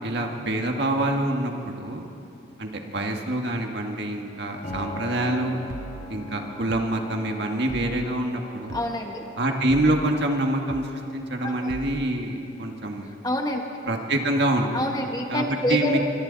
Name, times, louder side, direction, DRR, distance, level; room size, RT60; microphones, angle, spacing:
voice 1, 0.0-2.1 2.6-5.6 6.1-8.8 9.4-13.1 13.9-14.7 15.3-16.0, right 1 dB, 60° right, 2 dB, 1.9 m, -26 dB
Piano, 4.6-14.2, left 2 dB, 35° left, 1.9 m, -43 dB
sound 1, 4.7-4.9 5.7-6.1 6.7-6.9 7.7-8.1 8.7-8.9 9.7-10.1 10.7-10.9 11.7-12.1, right 4 dB, 80° right, 0.5 m, -39 dB
voice 2, 8.7-9.2 11.4-11.7 13.2-13.6 14.7-16.0, left 1 dB, 20° left, 2 dB, 1.5 m, -27 dB
25.5 x 24.5 x 4.1 m, 2.8 s
head